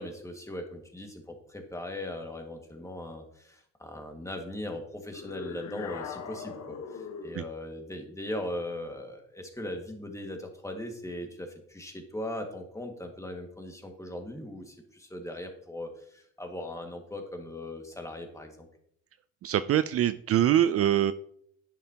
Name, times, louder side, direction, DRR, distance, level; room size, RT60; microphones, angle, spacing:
voice 1, 0.0-18.7, left 1 dB, 10° left, 3 dB, 1.9 m, -39 dB
sound 1, 5.1-7.4, left 5 dB, 65° left, 1.2 m, -40 dB
voice 2, 19.4-21.1, right 11 dB, 50° right, 13 dB, 0.4 m, -24 dB
10.5 x 7.2 x 2.9 m, 0.70 s
cardioid pair, 75°, 29 cm